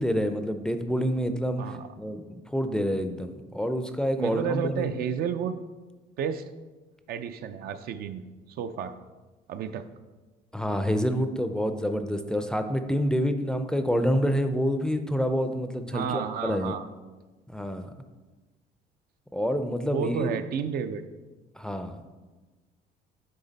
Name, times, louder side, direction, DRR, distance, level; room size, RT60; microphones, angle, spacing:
voice 1, 0.0-1.6 2.0-4.9 10.5-16.1 16.4-16.7 17.5-17.9 19.3-20.4 21.6-22.0, equal, 5° left, 7 dB, 0.4 m, -27 dB
voice 2, 4.2-5.6 6.2-6.5 7.1-8.2 8.5-9.0 9.5-9.9 15.9-16.8 19.9-21.1, right 7 dB, 65° right, 10 dB, 0.5 m, -31 dB
9.2 x 3.3 x 4.0 m, 1.2 s
cardioid pair, 110°, 17 cm